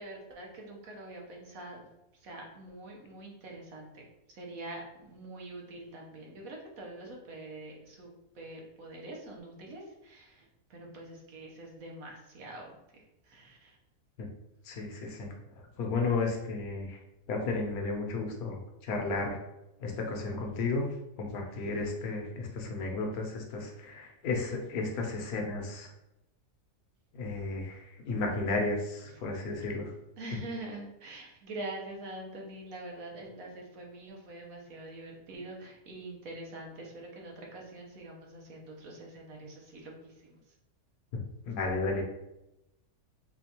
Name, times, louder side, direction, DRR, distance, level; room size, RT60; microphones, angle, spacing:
voice 1, 0.0-1.8 2.2-4.0 4.3-10.4 10.7-13.8 30.2-40.4, right 2 dB, 65° right, -1 dB, 1.2 m, -45 dB
voice 2, 14.6-15.3 15.8-17.0 17.3-18.6 18.8-19.4 19.8-25.9 27.1-29.9 41.1-41.2 41.5-42.0, left 3 dB, 75° left, 1 dB, 1.1 m, -33 dB
4.3 x 2.3 x 2.8 m, 0.91 s
omnidirectional pair, 1.6 m